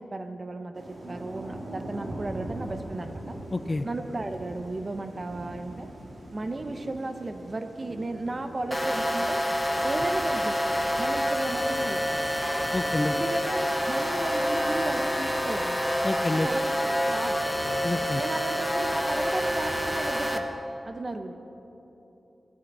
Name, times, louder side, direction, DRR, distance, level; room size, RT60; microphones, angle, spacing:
voice 1, 0.0-3.4 3.8-5.9 6.3-9.4 9.8-10.6 11.0-12.3 13.1-15.8 16.3-17.4 18.2-20.5 20.8-21.4, right 2 dB, 35° right, 8 dB, 0.8 m, -35 dB
Thunder / Rain, 0.7-19.9, right 1 dB, 60° right, 2.6 m, -43 dB
voice 2, 3.5-3.8 12.7-13.1 16.0-16.5 17.8-18.2, left 2 dB, 25° left, 10 dB, 0.4 m, -28 dB
sound 1, 8.7-20.4, equal, 5° left, 0.8 m, -27 dB
15.5 x 12.5 x 5.4 m, 3.0 s
wide cardioid pair, 135°, 0 cm